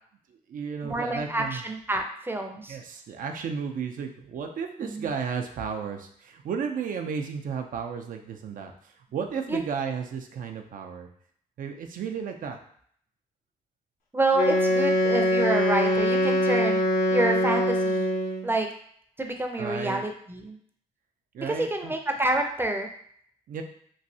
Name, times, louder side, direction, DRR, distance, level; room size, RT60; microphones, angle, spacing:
voice 1, 0.3-1.6 2.7-8.7 9.1-11.1 11.6-12.6 19.6-20.0 21.3-21.9 23.5-23.6, right 6 dB, 60° right, 4 dB, 0.5 m, -33 dB
voice 2, 0.8-2.8 4.8-5.1 9.5-9.6 14.1-16.8 17.1-18.1 18.4-18.7 19.2-20.6 21.4-22.9, right 2 dB, 15° right, 4 dB, 0.5 m, -28 dB
Wind instrument woodwind instrument, 14.3-18.5, left 1 dB, 70° left, 0.8 m, -23 dB
3.1 x 2.6 x 2.7 m, 0.63 s
supercardioid pair, 60°, 15 cm